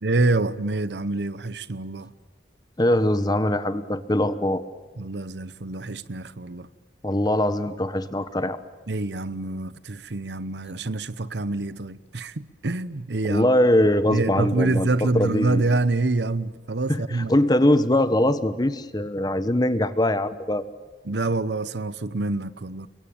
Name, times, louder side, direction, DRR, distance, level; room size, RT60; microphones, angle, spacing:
voice 1, 0.0-2.1 5.0-6.7 8.9-13.5 14.1-17.4 21.0-22.9, right 2 dB, 75° right, 0.9 m, -26 dB
voice 2, 2.8-4.6 7.0-8.6 13.3-15.6 16.9-17.0 17.3-20.6, left 1 dB, 25° left, 1.2 m, -22 dB
29.5 x 22.5 x 9.0 m
head